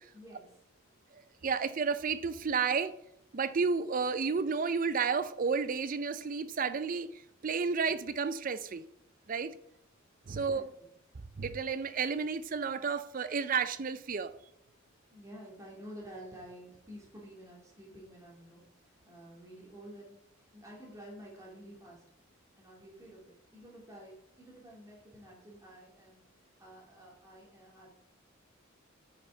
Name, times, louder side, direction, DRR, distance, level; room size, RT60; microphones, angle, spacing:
voice 1, 0.1-0.5 10.3-10.7 15.1-18.6 19.1-20.1 20.5-22.0 22.6-26.2 26.6-27.9, equal, 15° right, 2.7 m, -50 dB
voice 2, 1.4-2.9 3.3-7.1 7.4-8.9 9.3-9.5 10.3-10.7 11.4-14.3, right 5 dB, 40° right, 0.5 m, -31 dB
9.6 x 6.6 x 4.5 m
head